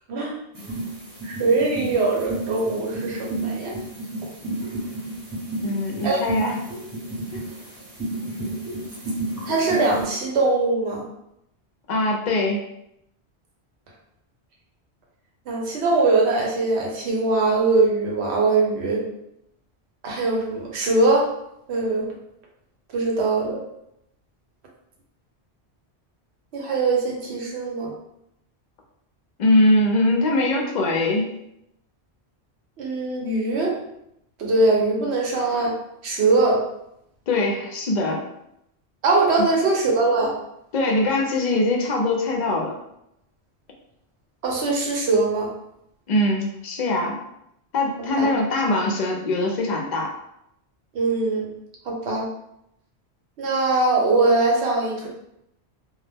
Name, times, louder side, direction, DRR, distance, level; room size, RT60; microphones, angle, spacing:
sound 1, 0.5-10.0, right 1 dB, 20° right, 0.7 m, -32 dB
voice 1, 1.2-3.7 6.0-6.2 9.5-11.1 15.5-19.0 20.0-21.3 21.7-22.1 22.9-23.6 26.5-27.9 32.8-33.8 34.4-35.7 36.0-36.6 39.0-40.3 44.4-45.5 48.2-48.3 50.9-51.5 51.9-52.3 53.4-55.1, right 3 dB, 80° right, -1 dB, 0.9 m, -21 dB
voice 2, 5.6-6.6 11.9-12.6 29.4-31.3 37.3-38.2 40.7-42.7 46.1-47.2 47.7-50.1, left 2 dB, 55° left, 0 dB, 0.5 m, -22 dB
2.2 x 2.0 x 3.3 m, 0.79 s
omnidirectional pair, 1.1 m